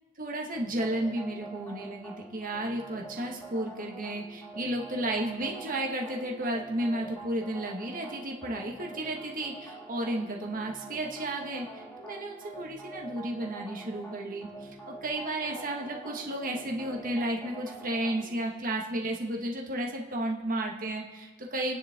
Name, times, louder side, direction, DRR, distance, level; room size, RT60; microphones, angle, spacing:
voice 1, 0.2-21.8, right 1 dB, 40° right, 0 dB, 1.8 m, -33 dB
sound 1, 0.5-18.4, right 2 dB, 10° left, 2.2 m, -46 dB
28.0 x 10.0 x 3.8 m, 1.3 s
head